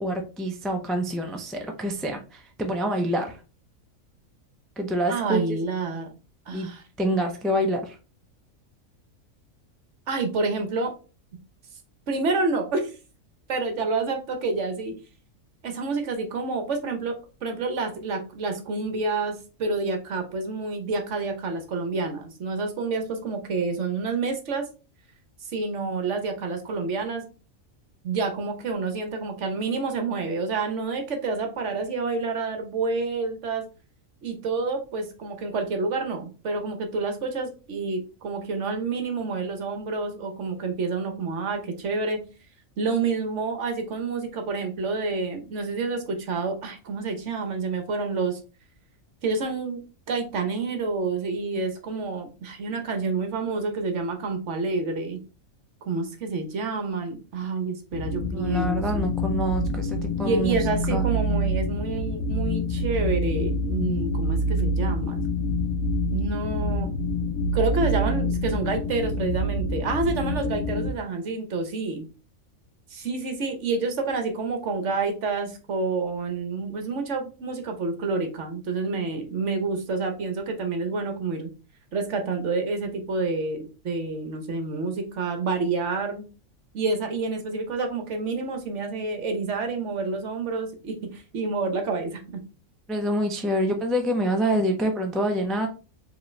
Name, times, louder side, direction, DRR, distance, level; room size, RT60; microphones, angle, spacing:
voice 1, 0.0-3.4 4.8-5.6 5.9-6.0 6.5-6.7 7.0-8.0 58.3-61.1 92.9-95.7, right 1 dB, ahead, 3 dB, 0.3 m, -26 dB
voice 2, 5.1-6.1 6.5-6.8 10.1-10.9 12.1-12.9 13.5-15.0 15.6-17.2 17.4-24.7 25.5-27.3 28.0-33.7 34.2-42.2 42.8-48.4 49.2-55.2 55.9-59.0 60.1-65.2 66.1-66.9 67.5-72.0 72.9-81.5 81.9-86.3 86.7-92.4, right 3 dB, 65° right, 5 dB, 1.2 m, -28 dB
sound 1, 57.9-70.9, equal, 85° left, 1.1 m, -26 dB
4.9 x 3.1 x 3.2 m, 0.34 s
omnidirectional pair, 1.4 m